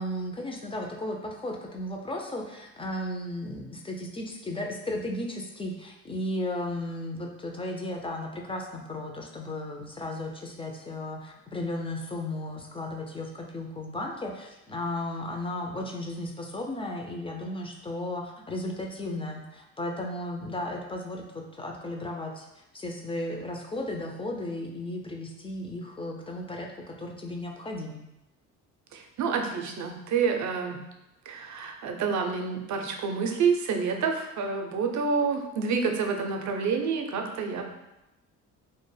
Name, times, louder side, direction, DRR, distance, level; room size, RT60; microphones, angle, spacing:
voice 1, 0.0-28.0, left 1 dB, 15° left, 1 dB, 0.3 m, -35 dB
voice 2, 28.9-30.8 31.3-37.6, right 5 dB, 50° right, 4 dB, 0.5 m, -28 dB
2.2 x 2.0 x 3.1 m, 0.92 s
supercardioid pair, 65°, 37 cm